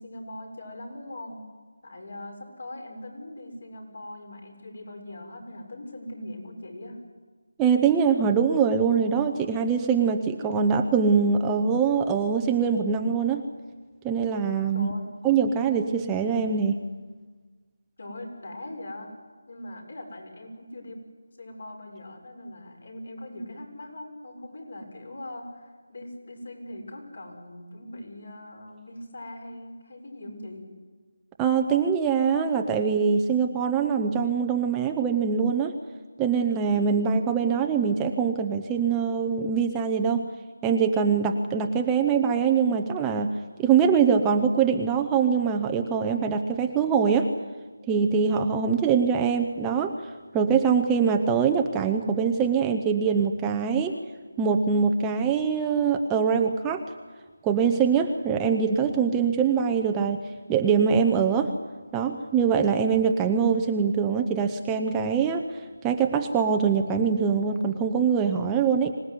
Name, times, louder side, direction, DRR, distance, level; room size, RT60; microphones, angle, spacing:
voice 1, 0.0-1.4 1.8-7.0 14.7-15.1 18.0-19.1 19.5-21.0 21.4-30.6, left 1 dB, 60° left, 3 dB, 6.8 m, -41 dB
voice 2, 7.6-13.4 14.0-14.9 15.2-16.8 31.4-35.7 36.2-40.2 40.6-43.3 43.6-47.3 47.9-50.1 50.3-54.0 54.4-56.8 57.4-61.5 61.9-68.9, right 6 dB, 10° right, 4 dB, 0.7 m, -23 dB
25.5 x 18.5 x 9.7 m, 1.4 s
figure-of-eight pair, 175°, 0 cm